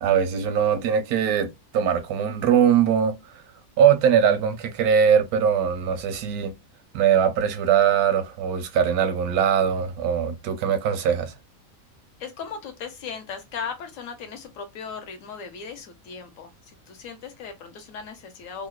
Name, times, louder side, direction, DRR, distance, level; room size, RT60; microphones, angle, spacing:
voice 1, 0.0-3.2 3.8-6.5 6.9-11.3, right 8 dB, 85° right, 1.1 m, -21 dB
voice 2, 12.2-18.7, left 6 dB, 70° left, 1.0 m, -37 dB
2.9 x 2.0 x 2.2 m
omnidirectional pair, 1.5 m